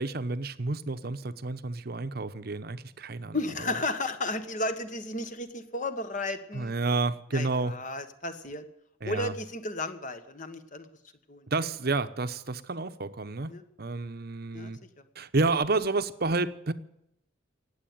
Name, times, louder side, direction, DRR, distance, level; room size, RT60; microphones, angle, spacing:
voice 1, 0.0-3.4 6.5-7.7 9.0-9.3 11.5-14.8 15.2-16.7, right 3 dB, 50° right, 0.9 m, -30 dB
voice 2, 3.3-6.7 7.3-8.6 9.0-10.9 11.3-11.5 13.5-13.6 14.5-14.7, left 2 dB, 40° left, 1.4 m, -33 dB
19.0 x 8.2 x 9.3 m
head